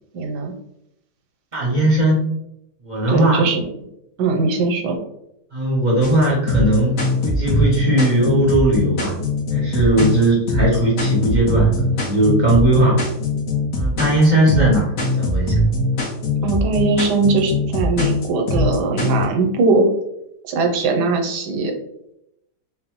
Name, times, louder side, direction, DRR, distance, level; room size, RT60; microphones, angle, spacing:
voice 1, 0.1-0.5 3.1-3.6 4.2-5.0 16.4-19.9 20.4-21.7, right 3 dB, 85° right, 3 dB, 1.2 m, -20 dB
voice 2, 1.5-2.3 2.8-3.4 5.5-9.2 9.5-13.1 13.7-15.6, right 1 dB, 45° right, -4 dB, 0.6 m, -18 dB
sound 1, 6.0-19.3, left 2 dB, 60° left, 1.1 m, -21 dB
3.9 x 2.0 x 2.9 m, 0.80 s
omnidirectional pair, 1.8 m